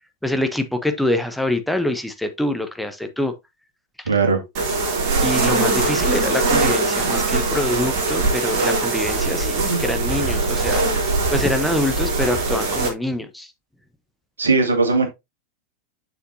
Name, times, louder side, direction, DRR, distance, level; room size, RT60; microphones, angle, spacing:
voice 1, 0.2-3.3 5.2-10.8 11.3-13.5, left 1 dB, ahead, 1.0 m, -25 dB
voice 2, 4.1-4.4 14.4-15.1, right 4 dB, 70° right, 2.2 m, -18 dB
sound 1, 4.5-12.9, right 3 dB, 45° right, 3.1 m, -21 dB
7.0 x 6.6 x 2.7 m
figure-of-eight pair, 90°, 0 cm